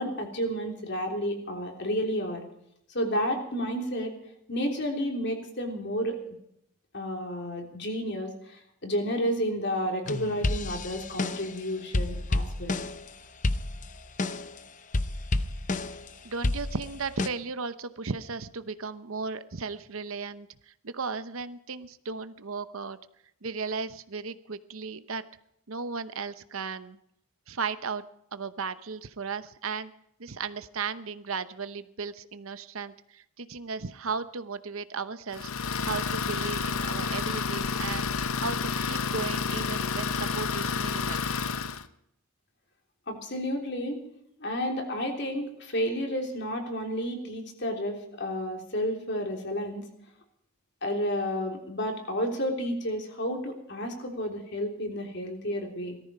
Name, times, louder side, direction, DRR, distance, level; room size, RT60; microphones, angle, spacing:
voice 1, 0.0-2.5 2.9-4.1 4.5-6.2 6.9-12.8 43.1-44.0 44.4-49.8 50.8-56.0, equal, 50° left, 2 dB, 3.3 m, -31 dB
sound 1, 10.1-11.6 11.9-13.1 13.4-14.6 14.9-16.1 16.4-17.3, left 2 dB, 35° left, 0.7 m, -30 dB
voice 2, 16.2-23.0 23.4-25.2 25.7-27.0 27.5-28.0 28.3-29.9 30.2-41.3, right 5 dB, 70° right, 13 dB, 0.8 m, -35 dB
Idling, 35.3-41.9, left 5 dB, 75° left, 0.9 m, -30 dB
18.5 x 14.0 x 5.5 m, 0.75 s
head